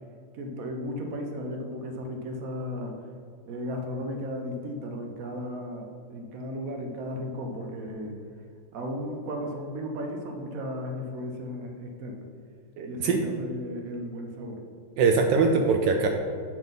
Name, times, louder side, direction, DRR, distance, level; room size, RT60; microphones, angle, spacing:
voice 1, 0.3-3.0 3.5-8.2 8.7-12.2 12.8-14.6, equal, 55° right, 2 dB, 1.2 m, -35 dB
voice 2, 12.8-13.2 15.0-16.1, right 4 dB, 80° right, 4 dB, 1.3 m, -22 dB
9.0 x 3.9 x 5.3 m, 2.3 s
omnidirectional pair, 2.0 m